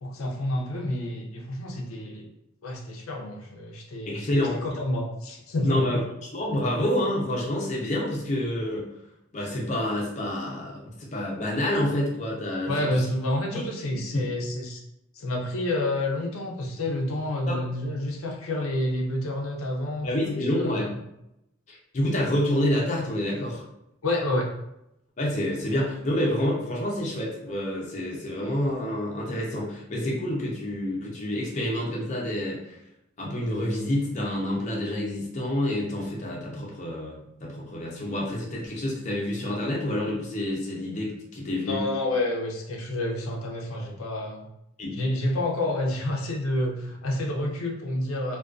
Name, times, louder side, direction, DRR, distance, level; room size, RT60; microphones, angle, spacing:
voice 1, 0.0-2.3 2.6-6.0 12.7-14.8 15.1-20.9 24.0-24.5 41.6-44.5 44.9-48.4, left 1 dB, 90° left, 0 dB, 0.5 m, -29 dB
voice 2, 4.1-4.6 5.6-6.0 6.3-8.9 9.3-13.0 13.5-13.6 14.1-14.3 17.5-17.6 20.0-20.9 21.7-23.6 25.2-32.8 33.2-41.8 44.8-45.0, left 1 dB, 35° left, -3 dB, 0.5 m, -28 dB
2.4 x 2.2 x 2.3 m, 0.82 s
head